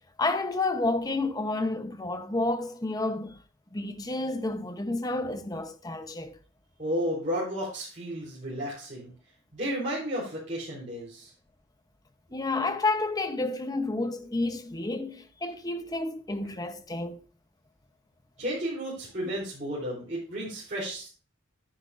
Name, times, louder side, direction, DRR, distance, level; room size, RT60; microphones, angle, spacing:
voice 1, 0.2-3.4 3.7-6.4 12.3-17.2, left 2 dB, 20° left, 0.7 m, -30 dB
voice 2, 6.8-9.1 9.5-11.3 18.4-21.1, equal, 40° right, 3.7 m, -32 dB
10.5 x 9.9 x 2.5 m
head